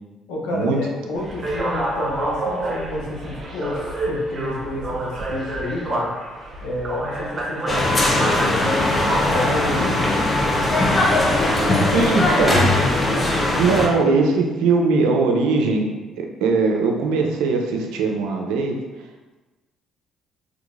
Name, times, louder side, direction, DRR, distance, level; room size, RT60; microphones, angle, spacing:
voice 1, 0.3-6.1 6.6-9.0 9.3-10.2 11.6-12.1 12.4-12.6, left 2 dB, 80° left, -3 dB, 0.7 m, -29 dB
sound 1, 1.1-13.0, right 1 dB, 35° right, 0.9 m, -29 dB
sound 2, 7.7-13.9, left 1 dB, 25° left, 0.8 m, -19 dB
voice 2, 11.9-12.7 13.6-15.9 16.2-18.8, right 4 dB, 80° right, 2 dB, 0.4 m, -20 dB
3.7 x 3.2 x 2.4 m, 1.2 s
hypercardioid pair, 60°, 0 cm